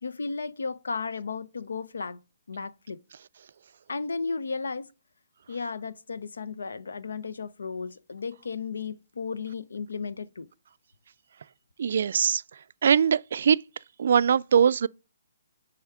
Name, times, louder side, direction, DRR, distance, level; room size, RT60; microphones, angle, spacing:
voice 1, 0.0-2.2 2.5-3.0 3.9-4.9 5.5-10.5, left 4 dB, 85° left, 0.7 m, -34 dB
voice 2, 11.8-12.4 12.8-13.6 14.0-14.9, right 7 dB, 65° right, 0.3 m, -21 dB
6.3 x 4.8 x 4.8 m
hypercardioid pair, 150°, 0 cm